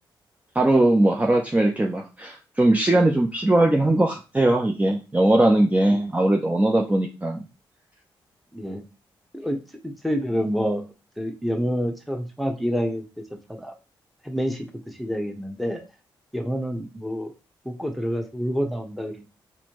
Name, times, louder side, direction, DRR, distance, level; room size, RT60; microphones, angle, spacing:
voice 1, 0.5-7.4, right 1 dB, 15° right, 1 dB, 0.6 m, -20 dB
voice 2, 8.5-8.8 9.3-10.8 11.2-13.1 13.5-13.7 14.2-15.8 16.3-17.3 17.6-19.3, equal, ahead, 3 dB, 1.0 m, -28 dB
4.2 x 2.6 x 3.0 m, 0.30 s
supercardioid pair, 55°, 9 cm